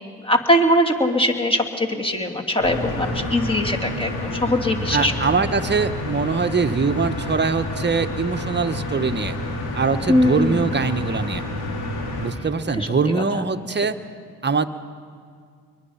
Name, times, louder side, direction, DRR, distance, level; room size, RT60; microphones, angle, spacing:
voice 1, 0.2-5.1 10.1-10.6 12.8-12.9, left 1 dB, 15° left, 2 dB, 2.7 m, -21 dB
sound 1, 2.6-12.3, left 1 dB, 70° left, 3.6 m, -29 dB
voice 2, 4.9-9.4 9.7-11.4 12.2-14.0 14.4-14.7, right 4 dB, 25° right, 8 dB, 1.2 m, -22 dB
23.0 x 21.0 x 5.7 m, 2.2 s
supercardioid pair, 55°, 40 cm